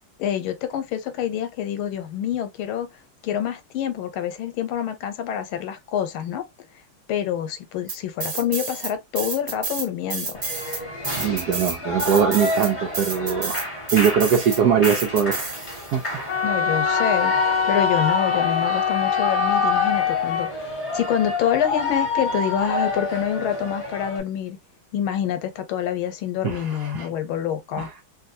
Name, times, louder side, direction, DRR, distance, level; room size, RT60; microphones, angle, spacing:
voice 1, 0.2-2.9 3.2-6.4 7.1-10.4 16.4-24.6 24.9-27.9, left 9 dB, 90° left, 1.5 m, -27 dB
sound 1, 7.9-8.9 9.2-16.0, right 4 dB, 45° right, 0.9 m, -30 dB
Shout / Cheering, 10.3-24.2, left 3 dB, 20° left, 1.0 m, -28 dB
voice 2, 11.2-13.6 13.9-15.5 15.9-16.4 26.4-27.1 27.8-27.9, right 7 dB, 70° right, 1.0 m, -21 dB
Wind instrument woodwind instrument, 16.3-20.5, left 7 dB, 60° left, 1.3 m, -23 dB
3.3 x 2.6 x 2.5 m
omnidirectional pair, 2.2 m